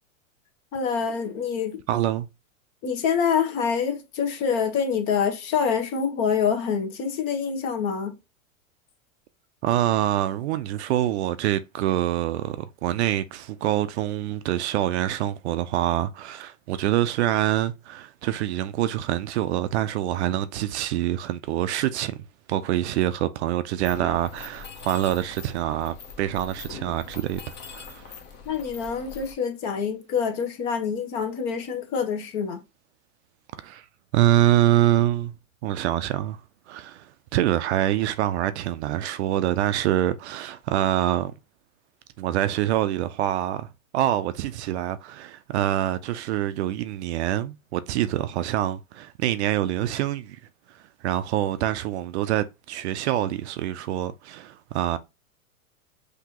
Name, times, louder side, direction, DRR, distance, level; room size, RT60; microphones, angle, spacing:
voice 1, 0.7-1.8 2.8-8.1 28.4-32.6, left 6 dB, 40° left, 1.1 m, -26 dB
voice 2, 1.9-2.3 9.6-22.2 22.5-28.1 33.6-33.9 34.1-35.3 35.6-36.4 36.7-41.3 42.2-43.7 43.9-50.4 50.7-55.0, right 13 dB, 50° right, 0.4 m, -25 dB
Mechanisms, 23.8-29.3, left 6 dB, 25° left, 0.8 m, -42 dB
5.9 x 2.8 x 2.8 m
hypercardioid pair, 135°, 43 cm